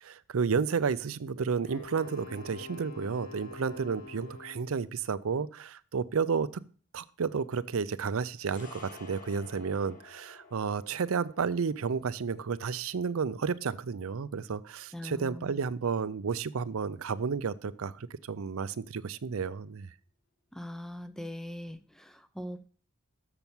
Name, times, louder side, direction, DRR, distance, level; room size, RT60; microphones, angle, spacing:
voice 1, 0.0-6.5 6.9-19.9, right 5 dB, 75° right, 0.5 m, -32 dB
Wind instrument woodwind instrument, 1.7-4.8, left 4 dB, 85° left, 4.5 m, -46 dB
sound 1, 8.4-16.9 17.1-17.3, left 4 dB, 35° left, 2.1 m, -55 dB
voice 2, 14.9-15.6 20.5-22.7, left 1 dB, ahead, 0.5 m, -41 dB
6.9 x 5.9 x 7.1 m
head